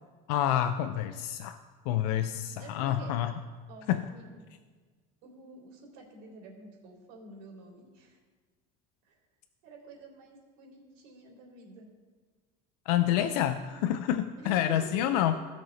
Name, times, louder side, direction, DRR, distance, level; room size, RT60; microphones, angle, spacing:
voice 1, 0.3-1.6 1.9-3.3 3.9-4.0 12.9-15.4, left 11 dB, 85° left, 8 dB, 0.6 m, -28 dB
voice 2, 2.1-3.1 3.7-4.5 5.2-8.2 9.0-9.2 9.6-11.9 14.4-15.4, right 3 dB, 75° right, -2 dB, 3.6 m, -49 dB
16.5 x 6.1 x 4.1 m, 1.4 s
cardioid pair, 145°, 20 cm